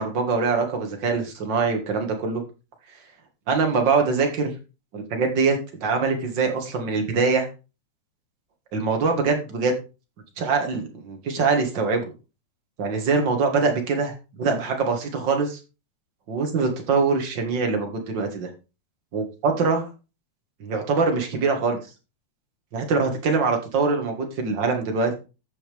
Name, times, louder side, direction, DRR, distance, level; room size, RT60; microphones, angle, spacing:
voice 1, 0.0-2.4 3.5-4.5 4.9-7.5 8.7-9.8 10.4-12.1 12.8-15.6 16.3-18.5 19.1-19.9 20.6-21.8 22.7-25.1, right 4 dB, 40° right, 3 dB, 2.1 m, -23 dB
14.5 x 5.7 x 3.5 m, 0.30 s
omnidirectional pair, 3.5 m